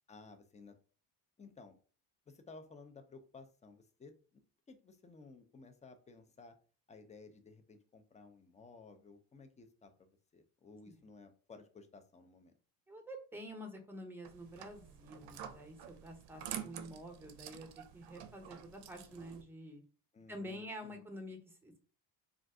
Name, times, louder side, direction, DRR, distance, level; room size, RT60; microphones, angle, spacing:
voice 1, 0.1-0.8 1.4-1.8 2.3-4.4 4.7-6.6 6.9-12.5 20.1-21.0 21.2-21.3, left 3 dB, 15° left, 8 dB, 0.4 m, -56 dB
voice 2, 12.9-17.7 17.9-19.8 20.3-21.8, equal, 5° right, 3 dB, 0.8 m, -48 dB
sound 1, 14.2-19.4, right 9 dB, 70° right, 0.5 m, -48 dB
2.5 x 2.4 x 3.4 m, 0.40 s
supercardioid pair, 85°, 43 cm